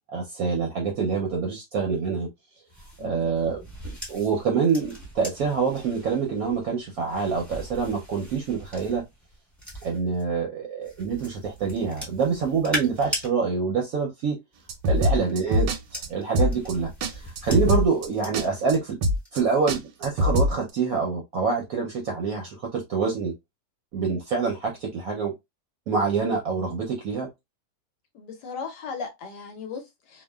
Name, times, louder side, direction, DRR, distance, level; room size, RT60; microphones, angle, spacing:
voice 1, 0.1-2.3 3.0-9.0 9.8-14.4 14.9-19.0 19.3-23.3 23.9-25.3 25.9-27.3, right 5 dB, 65° right, 0.9 m, -26 dB
sound 1, 2.7-10.2 10.8-13.3 14.5-18.8 19.1-19.5, equal, ahead, 1.0 m, -40 dB
voice 2, 3.0-3.3 14.9-15.0 28.1-30.2, left 5 dB, 75° left, 1.2 m, -37 dB
sound 2, 14.7-15.8 16.0-16.1 16.3-16.7 17.0-17.1 17.4-18.1 18.3-18.4 18.7-18.8 19.0-19.4 19.7-20.5, equal, 85° right, 1.2 m, -22 dB
2.8 x 2.3 x 2.2 m
omnidirectional pair, 1.9 m